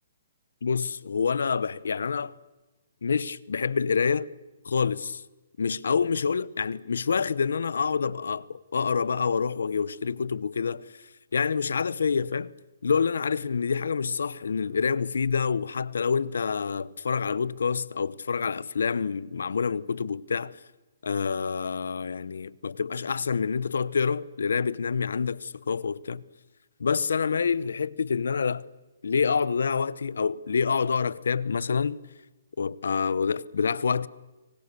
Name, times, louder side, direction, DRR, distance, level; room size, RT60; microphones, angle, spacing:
voice 1, 0.6-2.3 3.0-4.3 4.6-5.2 5.6-10.9 11.3-12.5 12.8-20.6 21.0-26.2 26.8-28.6 29.0-32.0 32.6-34.1, left 5 dB, 85° left, 0.9 m, -27 dB
26.0 x 24.0 x 6.8 m
hypercardioid pair, 155°, 0 cm